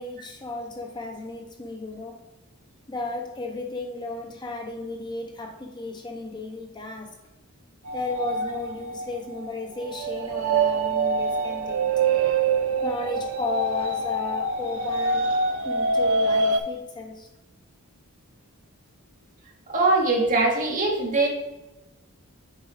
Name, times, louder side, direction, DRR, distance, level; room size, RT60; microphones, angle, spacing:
voice 1, 0.0-2.2 2.9-7.2 7.9-11.9 12.8-15.3 15.6-17.3, left 2 dB, 20° left, 0.5 m, -34 dB
sound 1, 7.9-16.6, right 3 dB, 70° right, 0.6 m, -25 dB
voice 2, 19.7-21.3, right 2 dB, 35° right, 1.4 m, -22 dB
7.1 x 4.6 x 3.4 m
head